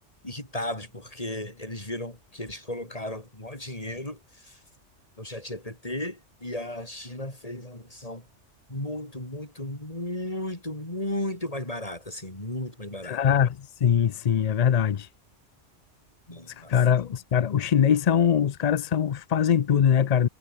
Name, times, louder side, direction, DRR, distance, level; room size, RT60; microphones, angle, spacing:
voice 1, 0.2-4.6 5.2-8.2 8.7-13.2 16.3-16.7, left 1 dB, 30° left, 5.0 m, -35 dB
voice 2, 13.0-15.1 16.5-20.3, left 8 dB, 50° left, 0.5 m, -22 dB
omnidirectional pair, 1.2 m